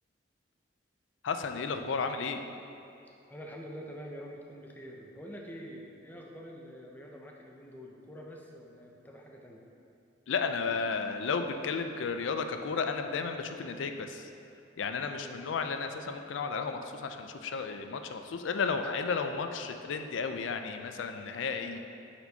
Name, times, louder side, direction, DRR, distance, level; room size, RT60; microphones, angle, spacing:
voice 1, 1.2-2.4 10.3-14.3 14.8-21.8, left 5 dB, 75° left, 7 dB, 0.4 m, -33 dB
voice 2, 3.3-9.6 15.1-15.4 21.7-21.8, equal, 10° left, -1 dB, 0.5 m, -46 dB
8.7 x 4.3 x 2.7 m, 2.7 s
head